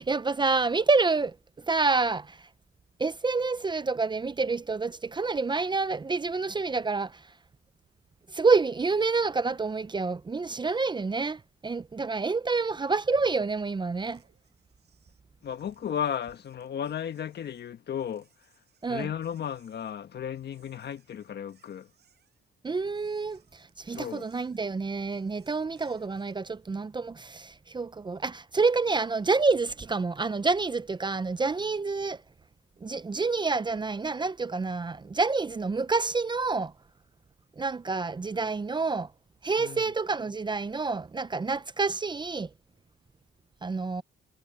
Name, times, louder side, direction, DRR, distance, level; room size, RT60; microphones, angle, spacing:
voice 1, 0.0-2.5 3.0-7.3 8.3-14.2 18.8-19.1 22.6-32.2 32.8-36.7 37.6-39.1 39.4-42.5 43.6-44.0, right 4 dB, 20° right, 0.6 m, -28 dB
sound 1, 13.9-26.5, right 8 dB, 55° right, 7.7 m, -67 dB
voice 2, 15.4-18.3 18.9-21.9 23.9-24.2 39.6-39.8, left 9 dB, 55° left, 1.6 m, -34 dB
cardioid pair, 90°, 20 cm